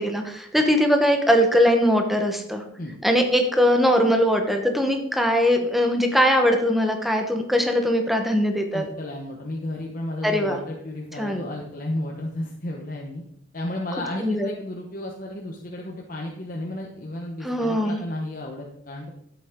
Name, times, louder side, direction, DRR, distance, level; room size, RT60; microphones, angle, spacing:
voice 1, 0.0-2.6 3.0-8.8 10.2-10.6 11.2-11.4 14.2-14.5 17.4-18.0, equal, ahead, 4 dB, 1.2 m, -21 dB
voice 2, 8.7-13.2 13.5-19.2, left 1 dB, 45° left, -1 dB, 1.2 m, -33 dB
12.0 x 8.5 x 3.8 m, 0.77 s
head